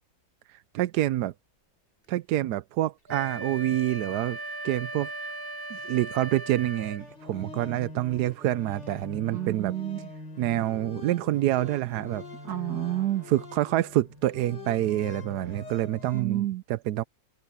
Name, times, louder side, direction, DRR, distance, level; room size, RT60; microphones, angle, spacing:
voice 1, 0.7-1.3 2.1-4.4 4.6-5.1 5.7-9.8 10.4-12.2 13.3-17.0, right 14 dB, 75° right, 1.0 m, -27 dB
Wind instrument woodwind instrument, 3.1-7.1, right 2 dB, 25° right, 7.9 m, -37 dB
sound 1, 7.0-16.3, left 3 dB, 65° left, 4.8 m, -44 dB
voice 2, 9.3-10.1 12.5-13.3 16.1-16.6, right 13 dB, 55° right, 2.6 m, -29 dB
omnidirectional pair, 2.1 m